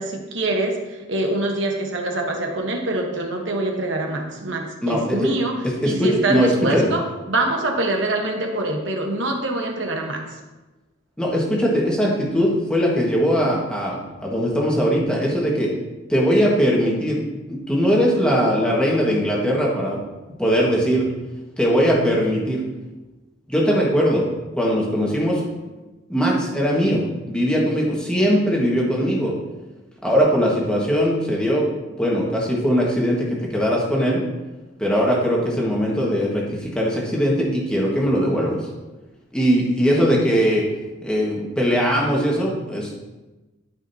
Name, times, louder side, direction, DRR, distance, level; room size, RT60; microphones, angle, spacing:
voice 1, 0.0-5.5 5.8-10.2, right 2 dB, 60° right, 2 dB, 1.1 m, -24 dB
voice 2, 4.8-5.3 5.8-6.9 11.2-15.7 16.1-17.2 17.5-20.0 20.4-21.1 21.6-22.6 23.5-24.3 24.6-25.4 26.1-29.3 30.0-31.7 32.0-34.2 34.8-38.6 39.3-40.6 41.0-43.0, equal, 5° left, -4 dB, 1.4 m, -20 dB
12.5 x 5.1 x 2.7 m, 1.1 s
head